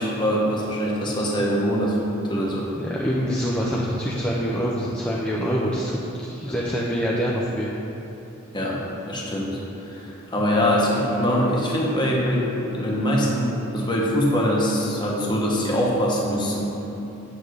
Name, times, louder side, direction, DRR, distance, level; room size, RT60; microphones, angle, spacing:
voice 1, 0.0-2.0 2.3-2.7 6.5-6.6 8.5-16.8, equal, 20° left, -4 dB, 1.2 m, -23 dB
voice 2, 2.8-7.8, equal, 5° left, -6 dB, 0.5 m, -25 dB
sound 1, 10.5-13.7, left 1 dB, 55° right, 1.3 m, -41 dB
8.3 x 3.6 x 6.3 m, 2.9 s
head